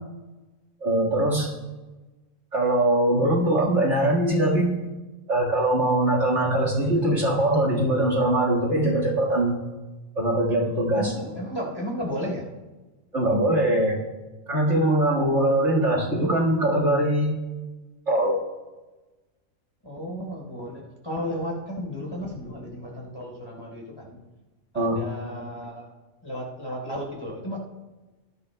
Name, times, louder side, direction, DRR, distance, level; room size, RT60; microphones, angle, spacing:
voice 1, 0.8-1.5 2.5-4.8 5.3-9.6 10.2-11.1 13.1-14.0 14.5-17.4 18.1-18.5 24.7-25.0, right 1 dB, 55° right, -2 dB, 2.2 m, -22 dB
voice 2, 10.9-12.5 19.8-24.2 24.7-25.9 26.2-27.6, equal, 20° left, -2 dB, 3.9 m, -33 dB
20.5 x 11.5 x 2.3 m, 1.2 s
omnidirectional pair, 1.4 m